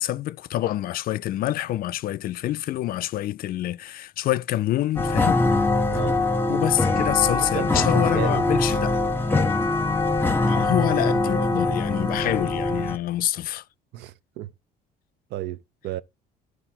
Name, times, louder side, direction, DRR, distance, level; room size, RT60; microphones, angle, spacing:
voice 1, 0.0-5.4 6.5-9.0 10.5-13.6, left 14 dB, 60° left, 0.4 m, -26 dB
sound 1, 5.0-13.0, left 2 dB, 15° left, 0.7 m, -23 dB
voice 2, 5.9-6.2 7.5-8.7 11.9-12.0 13.9-14.5 15.3-16.0, right 13 dB, 80° right, 0.6 m, -33 dB
13.0 x 4.8 x 2.8 m
cardioid pair, 110°, 17 cm